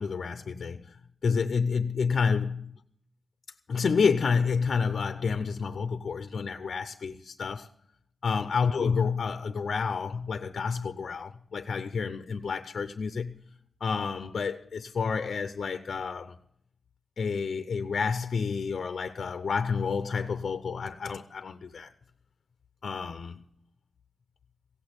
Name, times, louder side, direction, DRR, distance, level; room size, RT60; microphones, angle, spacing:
voice 1, 0.0-2.8 3.7-7.7 8.2-13.4 13.8-16.4 17.2-21.9 22.8-23.5, left 5 dB, 60° left, 0.7 m, -29 dB
16.5 x 8.7 x 7.9 m
wide cardioid pair, 165°, 0 cm